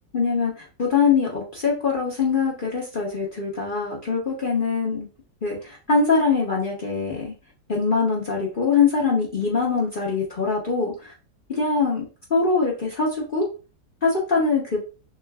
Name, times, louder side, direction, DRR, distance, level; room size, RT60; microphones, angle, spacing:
voice 1, 0.1-5.1 5.4-7.3 7.7-11.1 11.5-13.5 14.0-14.8, left 4 dB, 40° left, -3 dB, 0.9 m, -23 dB
6.4 x 2.5 x 2.3 m, 0.33 s
omnidirectional pair, 1.7 m